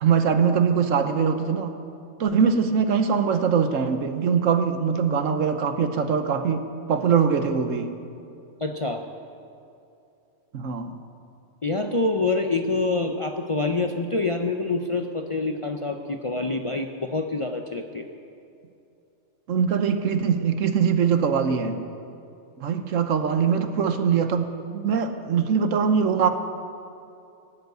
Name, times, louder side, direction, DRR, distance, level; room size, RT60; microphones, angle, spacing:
voice 1, 0.0-1.7 2.2-8.0 10.5-11.0 19.5-21.8 22.6-26.3, right 6 dB, 75° right, 8 dB, 1.3 m, -22 dB
voice 2, 8.6-9.0 11.6-18.1, left 3 dB, 35° left, 4 dB, 0.5 m, -26 dB
16.0 x 8.0 x 9.3 m, 2.7 s
omnidirectional pair, 1.4 m